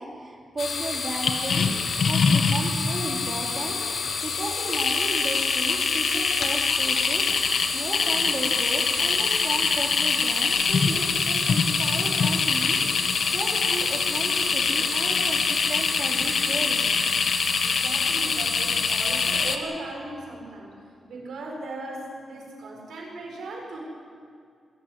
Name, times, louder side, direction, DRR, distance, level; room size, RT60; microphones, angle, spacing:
voice 1, 0.0-1.7 2.0-16.9, right 2 dB, 30° right, 0 dB, 3.6 m, -35 dB
sound 1, 0.6-19.6, left 5 dB, 60° left, 1.8 m, -24 dB
voice 2, 17.6-20.7 21.1-23.8, right 2 dB, 80° right, -1 dB, 7.2 m, -37 dB
26.5 x 14.5 x 9.8 m, 2.2 s
wide cardioid pair, 165°, 0 cm